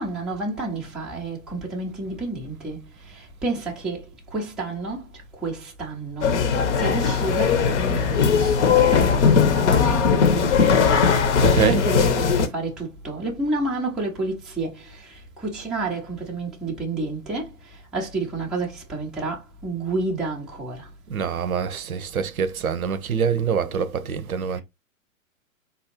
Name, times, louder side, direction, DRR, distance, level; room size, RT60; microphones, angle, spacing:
voice 1, 0.0-2.8 3.1-4.0 4.3-5.0 5.4-6.4 6.8-11.1 11.4-17.5 17.9-20.9, right 3 dB, ahead, 0.4 m, -30 dB
sound 1, 6.2-12.5, left 6 dB, 55° left, 0.8 m, -19 dB
voice 2, 11.3-11.8 21.1-24.6, right 6 dB, 90° right, 0.6 m, -25 dB
3.9 x 2.4 x 2.8 m
figure-of-eight pair, 110°, 41 cm